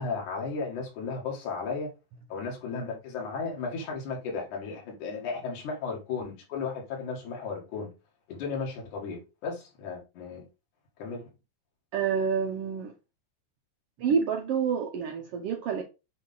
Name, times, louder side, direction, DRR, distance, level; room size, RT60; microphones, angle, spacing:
voice 1, 0.0-1.9 2.3-7.9 8.3-10.4 11.0-11.3, left 4 dB, 65° left, 3.3 m, -34 dB
voice 2, 11.9-12.9 14.0-15.8, right 6 dB, 85° right, 1.3 m, -28 dB
8.0 x 3.2 x 3.8 m
omnidirectional pair, 3.8 m